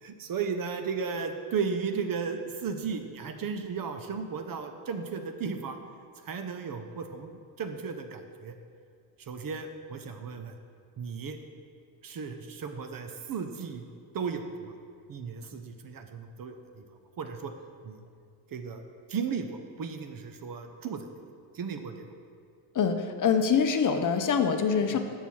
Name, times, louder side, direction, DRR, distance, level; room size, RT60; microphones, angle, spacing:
voice 1, 0.0-5.8 6.2-8.5 9.3-10.5 11.0-11.4 12.0-13.8 14.1-14.7 15.1-16.8 17.2-17.5 17.8-18.0 18.5-18.8 19.1-21.1 21.5-22.0 24.9-25.0, right 5 dB, 45° right, 6 dB, 0.7 m, -35 dB
voice 2, 22.7-25.0, left 6 dB, 40° left, 7 dB, 0.6 m, -25 dB
6.9 x 5.5 x 4.6 m, 2.2 s
cardioid pair, 75°, 48 cm